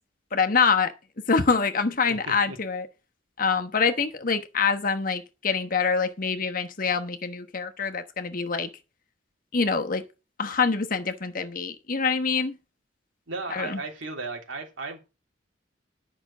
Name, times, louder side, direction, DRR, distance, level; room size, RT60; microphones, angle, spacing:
voice 1, 0.3-0.9 1.3-2.9 3.4-8.7 9.5-10.0 10.4-12.6 13.5-13.8, left 5 dB, 45° left, 1.1 m, -25 dB
voice 2, 2.1-2.6 13.3-15.0, right 3 dB, 80° right, 3.2 m, -35 dB
10.5 x 6.0 x 6.0 m
head